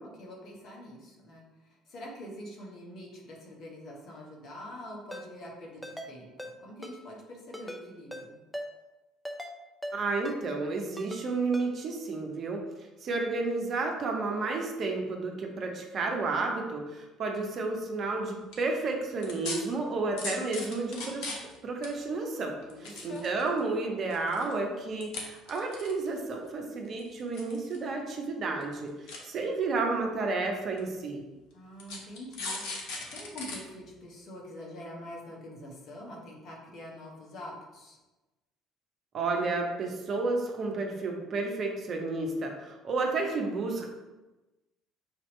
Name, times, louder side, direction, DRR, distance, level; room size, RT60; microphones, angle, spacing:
voice 1, 0.0-1.4 1.9-8.4 22.7-23.3 31.5-38.0, left 1 dB, 50° left, -2 dB, 1.3 m, -45 dB
Ringtone, 5.1-5.2 5.8-6.1 6.4-6.5 6.8-7.0 7.5-7.8 8.1-8.2 8.5-8.7 9.2-9.5 9.8-10.0 10.2-10.4 11.0-11.2 11.5-11.7, equal, 5° left, 0.6 m, -39 dB
voice 2, 9.9-12.6 13.0-21.4 21.6-22.5 22.8-28.9 29.2-31.2 39.1-43.9, right 3 dB, 45° right, 2 dB, 0.8 m, -31 dB
sound 1, 18.3-18.5 19.2-19.6 20.2-21.6 21.8-21.9 22.6-23.6 24.1-24.5 25.0-25.2 25.5-26.2 27.0-27.8 28.1-28.2 28.6-28.7 29.1-29.2 30.0-30.1 30.8-30.9 31.8-33.6 34.0-34.1, left 3 dB, 65° left, 0.9 m, -37 dB
5.8 x 2.9 x 3.1 m, 1.1 s
figure-of-eight pair, 55°, 0 cm